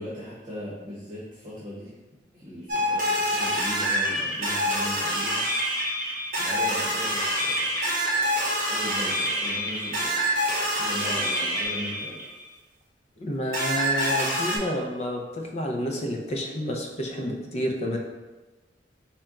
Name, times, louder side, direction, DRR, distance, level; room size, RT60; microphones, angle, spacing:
voice 1, 0.0-1.9 2.3-5.5 6.4-7.7 8.7-10.4 10.8-12.2, equal, 25° right, -9 dB, 1.0 m, -38 dB
sound 1, 2.7-12.4 13.5-14.6, equal, 50° right, 0.7 m, -26 dB
Bowed string instrument, 6.6-11.7, left 4 dB, 90° left, 0.7 m, -40 dB
voice 2, 13.2-18.0, equal, 35° left, 1 dB, 0.5 m, -30 dB
4.2 x 2.2 x 3.7 m, 1.2 s
head